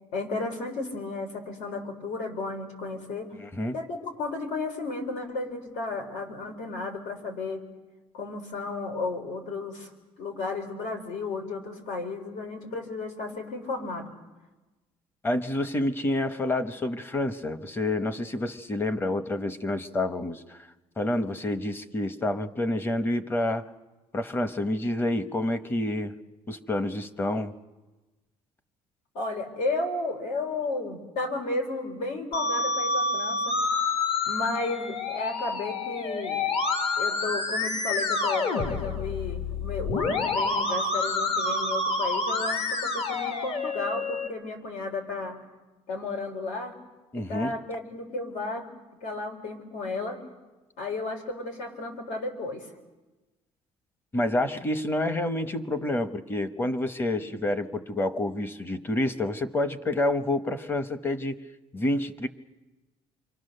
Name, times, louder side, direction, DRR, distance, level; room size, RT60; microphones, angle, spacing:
voice 1, 0.1-3.3 3.7-7.6 8.1-9.9 10.2-14.1 29.1-33.5 34.3-36.4 37.0-45.4 45.9-46.8 47.1-48.7 49.0-50.2 50.8-52.7, left 3 dB, 85° left, 4 dB, 4.2 m, -33 dB
voice 2, 3.4-3.7 15.2-20.6 21.0-23.6 24.1-26.1 26.5-27.5 47.1-47.5 54.1-61.4 61.7-62.3, left 1 dB, 15° left, 10 dB, 0.9 m, -28 dB
Musical instrument, 32.3-44.3, left 3 dB, 50° left, 1.5 m, -28 dB
28.5 x 23.5 x 6.7 m, 1.2 s
cardioid pair, 175°, 13 cm